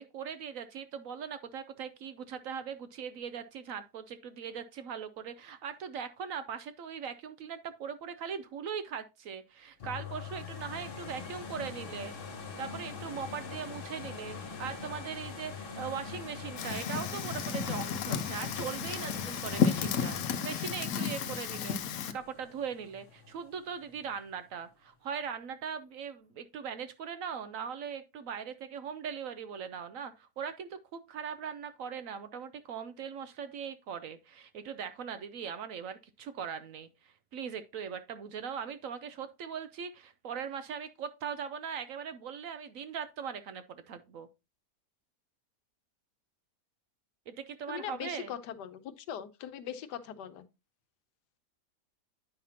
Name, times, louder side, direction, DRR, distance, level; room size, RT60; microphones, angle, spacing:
voice 1, 0.0-12.1 12.6-44.3 47.3-48.3, right 7 dB, 65° right, 0.9 m, -40 dB
sound 1, 9.8-23.5 24.0-24.1, left 5 dB, 40° left, 1.0 m, -43 dB
Fire, 16.6-22.1, left 6 dB, 65° left, 1.0 m, -32 dB
voice 2, 47.7-50.4, left 9 dB, 85° left, 1.3 m, -41 dB
9.2 x 5.8 x 2.8 m
omnidirectional pair, 1.8 m